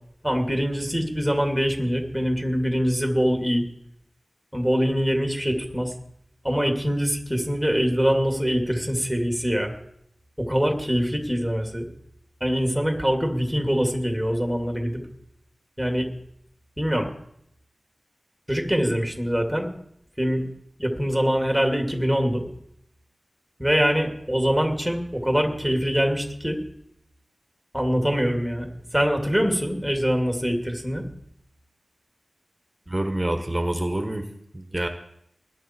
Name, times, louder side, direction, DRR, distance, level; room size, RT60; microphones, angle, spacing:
voice 1, 0.2-3.6 4.5-5.9 6.4-9.7 10.4-11.9 12.4-15.0 15.8-16.1 16.8-17.1 18.5-19.7 20.2-20.4 20.8-22.4 23.6-26.6 27.7-31.0, equal, ahead, 3 dB, 2.5 m, -24 dB
voice 2, 32.9-34.3 34.5-34.9, right 1 dB, 15° right, 6 dB, 1.3 m, -26 dB
20.0 x 11.0 x 4.5 m, 0.74 s
wide cardioid pair, 80°, 0 cm